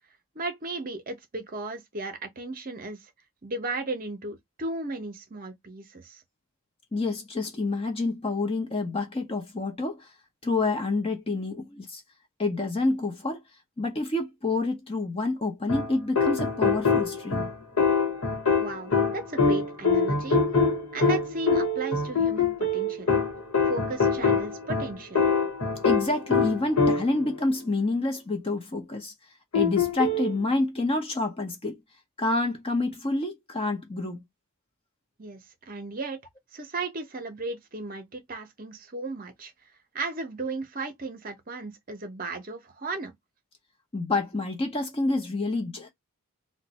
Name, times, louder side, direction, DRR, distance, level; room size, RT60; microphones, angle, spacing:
voice 1, 0.3-3.1 3.4-6.2 18.5-20.4 20.9-23.1 23.7-25.3 35.2-35.4 35.7-36.2 36.5-39.5 39.9-43.1, right 3 dB, 40° right, 0.7 m, -35 dB
voice 2, 6.9-10.1 10.4-12.0 12.4-13.4 13.8-17.5 25.8-29.1 29.5-31.8 32.2-34.2 43.9-45.9, left 2 dB, 25° left, 0.7 m, -28 dB
sound 1, 15.7-27.3 29.5-30.4, left 4 dB, 80° left, 1.0 m, -24 dB
2.6 x 2.2 x 3.9 m
head